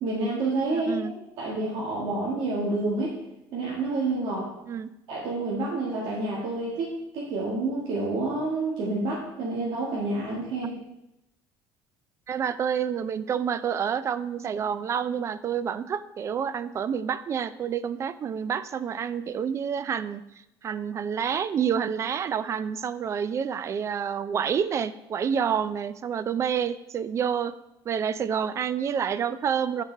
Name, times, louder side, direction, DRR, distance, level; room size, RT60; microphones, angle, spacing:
voice 1, 0.0-1.1 1.4-3.2 3.5-4.5 5.1-10.8, right 2 dB, 70° right, -6 dB, 1.8 m, -28 dB
voice 2, 0.7-1.1 4.7-4.9 12.3-20.2 20.6-27.5 27.9-29.8, right 7 dB, 35° right, 15 dB, 0.4 m, -28 dB
9.2 x 5.0 x 3.4 m, 0.89 s
cardioid pair, 125°, 9 cm